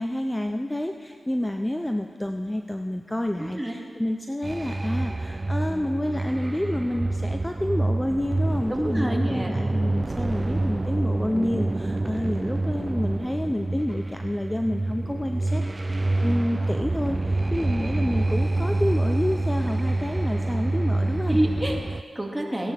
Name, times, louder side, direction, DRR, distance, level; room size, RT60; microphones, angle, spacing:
voice 1, 0.0-15.6 16.2-21.4, left 1 dB, 15° left, 6 dB, 0.6 m, -29 dB
voice 2, 3.4-3.8 8.7-9.5 9.9-10.1 21.3-22.7, right 1 dB, 15° right, 0 dB, 2.2 m, -28 dB
sound 1, 4.4-22.0, right 2 dB, 35° right, 0.3 m, -27 dB
16.5 x 11.0 x 3.5 m, 2.2 s
cardioid pair, 40°, 0 cm